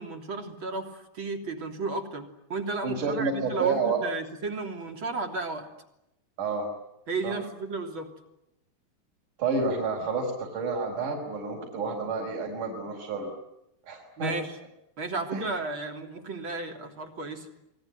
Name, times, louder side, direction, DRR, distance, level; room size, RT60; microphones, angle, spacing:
voice 1, 0.0-5.7 7.1-8.1 14.2-14.6 15.0-17.5, right 3 dB, 30° right, 4 dB, 3.4 m, -33 dB
voice 2, 2.8-4.0 6.4-6.7 7.2-7.4 9.4-13.3 13.9-14.4 15.3-15.5, right 4 dB, 50° right, -1 dB, 6.1 m, -29 dB
28.5 x 21.0 x 9.6 m, 0.86 s
omnidirectional pair, 4.8 m